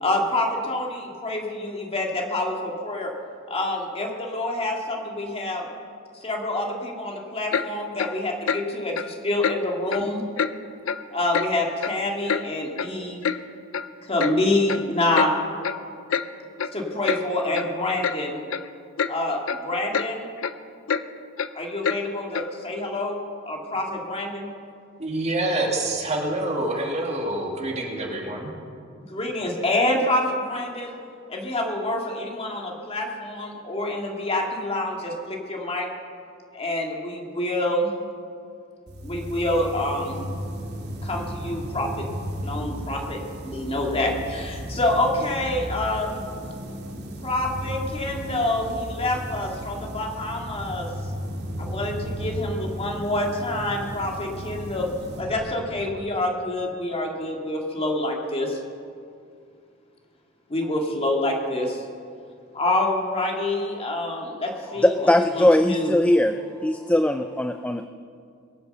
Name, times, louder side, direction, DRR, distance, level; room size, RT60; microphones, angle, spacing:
voice 1, 0.0-3.1 3.5-5.7 6.1-10.3 11.1-13.2 14.0-15.4 16.7-18.4 19.1-20.3 21.5-24.5 29.1-31.0 31.3-35.9 36.5-38.0 39.0-40.2 41.0-42.1 42.4-46.2 47.2-50.9 51.6-54.9 55.2-58.6 60.5-61.8 62.5-65.9, left 1 dB, 30° left, 1 dB, 2.1 m, -27 dB
Clock, 7.5-7.7 8.0-8.1 8.5-8.6 8.9-9.1 9.4-9.6 9.9-10.0 10.4-10.5 10.9-11.0 11.3-11.5 11.8-12.4 12.8-12.9 13.2-13.4 13.7-13.9 14.2-14.3 14.7-14.8 15.1-15.3 15.6-15.8 16.1-16.3 16.6-16.7 17.0-17.2 17.5-17.7 18.0-18.2 18.5-18.7 19.0-19.1 19.5-19.6 19.9-20.1 20.4-20.5 20.9-21.0 21.4-21.5 21.8-22.0 22.3-22.5, left 6 dB, 75° left, 0.6 m, -26 dB
voice 2, 25.0-28.5, right 1 dB, 35° right, 0 dB, 2.4 m, -26 dB
sound 1, 38.9-56.4, equal, 55° right, 2.2 m, -35 dB
voice 3, 64.8-66.3 66.6-67.9, left 1 dB, 5° left, 8 dB, 0.4 m, -20 dB
22.0 x 7.8 x 6.7 m, 2.3 s
head